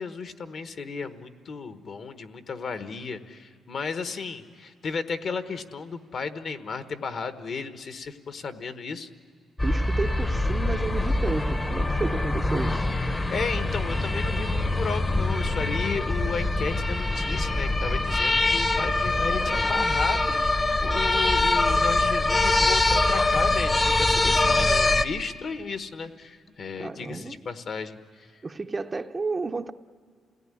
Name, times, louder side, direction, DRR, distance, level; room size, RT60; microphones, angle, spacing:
voice 1, 0.0-9.1 13.3-20.6 20.8-28.3, left 5 dB, 50° left, 9 dB, 1.2 m, -34 dB
sound 1, 9.6-25.1, left 2 dB, 15° left, 0.8 m, -24 dB
voice 2, 9.6-12.9 26.8-27.4 28.4-29.7, right 3 dB, 20° right, 8 dB, 0.6 m, -31 dB
28.0 x 18.0 x 9.8 m, 2.1 s
cardioid pair, 130°, 0 cm